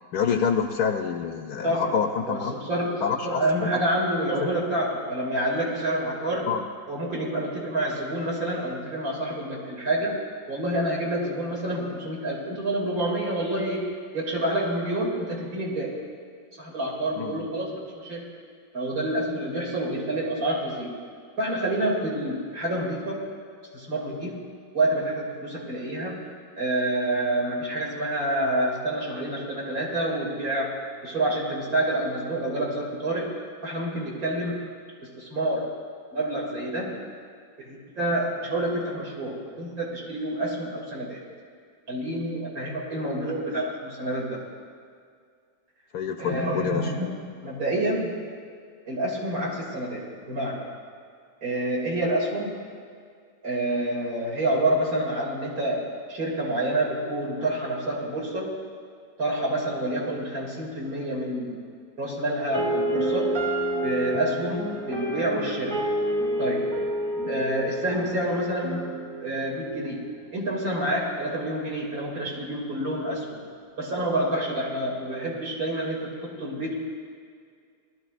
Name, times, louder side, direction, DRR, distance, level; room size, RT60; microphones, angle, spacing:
voice 1, 0.1-2.5 3.0-3.4 4.4-4.5 6.5-6.6 17.2-17.3 45.9-46.9, left 7 dB, 70° left, 4 dB, 1.0 m, -27 dB
voice 2, 1.6-1.9 2.2-6.5 6.9-10.2 10.5-16.0 16.6-18.3 18.7-21.0 21.4-23.3 23.7-24.4 24.7-26.2 26.6-30.7 31.0-34.7 35.0-35.7 36.1-37.0 37.6-41.2 41.9-44.4 46.2-47.1 47.4-48.2 48.9-50.6 51.4-52.5 53.4-58.5 59.2-61.6 62.0-63.3 63.8-65.8 66.4-66.7 67.2-68.8 69.2-73.4 73.8-76.8, right 1 dB, 55° right, -4 dB, 3.0 m, -28 dB
sound 1, 62.5-70.5, right 1 dB, 15° right, 1.3 m, -29 dB
19.0 x 13.0 x 2.5 m, 2.2 s
omnidirectional pair, 1.8 m